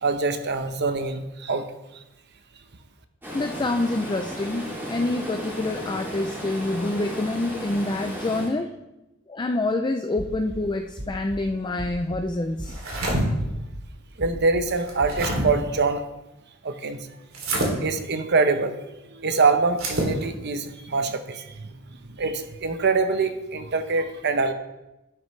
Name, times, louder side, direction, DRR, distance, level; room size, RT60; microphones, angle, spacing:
voice 1, 0.0-1.7 14.2-16.0 16.6-17.1 17.8-18.7 19.1-21.7 22.0-24.5, right 4 dB, 55° right, 8 dB, 0.9 m, -24 dB
Stream, 3.2-8.5, equal, 10° right, 2.7 m, -35 dB
voice 2, 3.3-8.7 9.3-12.8, left 2 dB, 20° left, 5 dB, 0.4 m, -27 dB
sound 1, 10.2-10.6 11.0-11.4 11.8-12.2 12.6-13.0 13.4-13.8 14.2-14.6 15.0-15.2, equal, 35° right, 1.2 m, -35 dB
sound 2, 12.7-13.2 14.7-15.4 17.3-17.7 19.7-20.1, right 1 dB, 75° right, 2.8 m, -26 dB
11.5 x 9.7 x 3.2 m, 0.97 s
head